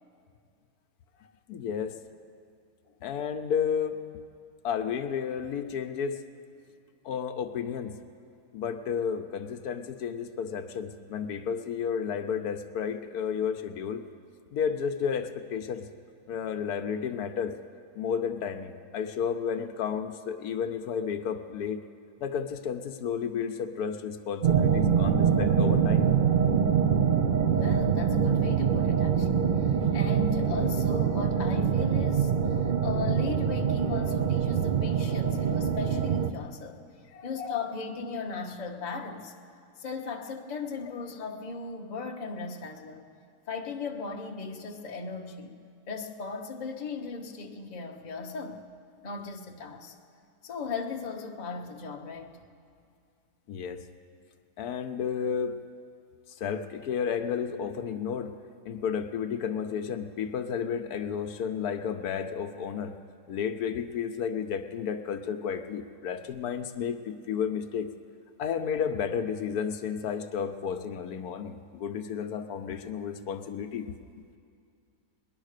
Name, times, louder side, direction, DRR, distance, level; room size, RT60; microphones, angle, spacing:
voice 1, 1.5-2.0 3.0-4.0 4.6-6.2 7.0-8.0 8.5-14.0 14.5-15.9 16.3-17.5 18.0-21.8 22.2-26.1 35.3-35.4 37.1-37.3 53.5-53.9 54.6-55.6 56.3-58.3 58.6-62.9 63.3-67.9 68.4-74.0, left 7 dB, 80° left, 8 dB, 1.2 m, -32 dB
sound 1, 24.4-36.3, right 7 dB, 75° right, 0.4 m, -24 dB
voice 2, 27.5-36.8 37.2-39.3 39.8-43.1 43.5-45.6 45.9-48.6 49.0-50.0 50.4-52.4, left 4 dB, 35° left, 2 dB, 0.9 m, -37 dB
19.0 x 11.0 x 6.5 m, 2.4 s
omnidirectional pair, 1.6 m